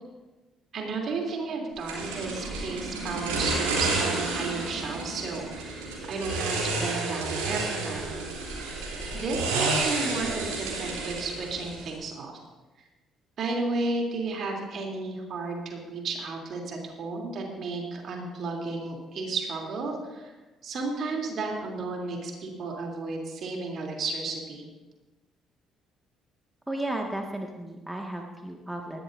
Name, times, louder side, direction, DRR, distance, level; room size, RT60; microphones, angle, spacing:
voice 1, 0.7-8.1 9.0-12.4 13.4-20.3 20.6-24.7, right 3 dB, 55° right, 0 dB, 3.2 m, -33 dB
sound 1, 1.9-12.0, right 3 dB, 80° right, 3.3 m, -30 dB
voice 2, 26.7-29.0, right 1 dB, 10° right, 1 dB, 1.8 m, -34 dB
20.0 x 13.5 x 2.7 m, 1.2 s
hypercardioid pair, 50°, 0 cm